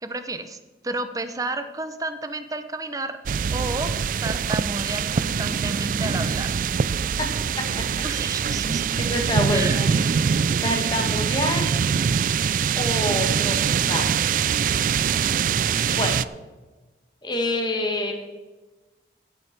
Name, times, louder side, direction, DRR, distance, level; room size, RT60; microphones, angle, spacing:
voice 1, 0.0-0.6 0.8-3.2 3.5-3.9 4.2-6.7 8.0-8.8 9.5-9.8, right 2 dB, 20° right, 10 dB, 0.7 m, -31 dB
sound 1, 3.3-16.3, right 7 dB, 45° right, 0.3 m, -23 dB
voice 2, 8.5-8.8 9.1-9.9 10.2-11.7 12.8-14.1 15.9-16.2 17.2-18.1, left 1 dB, 25° left, 2 dB, 1.9 m, -27 dB
16.0 x 8.3 x 4.6 m, 1.2 s
head